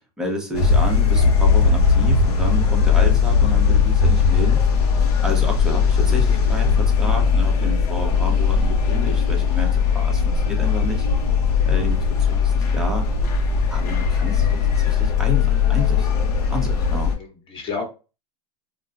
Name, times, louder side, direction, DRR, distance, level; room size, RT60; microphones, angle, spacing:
voice 1, 0.2-4.6 5.2-11.0 11.7-13.1 13.7-17.1, left 1 dB, 5° right, 0 dB, 0.9 m, -30 dB
sound 1, 0.5-17.1, left 5 dB, 75° left, 0.9 m, -18 dB
voice 2, 17.2-17.8, left 5 dB, 25° left, 1 dB, 1.4 m, -31 dB
2.3 x 2.3 x 3.9 m, 0.31 s
hypercardioid pair, 120°, 20 cm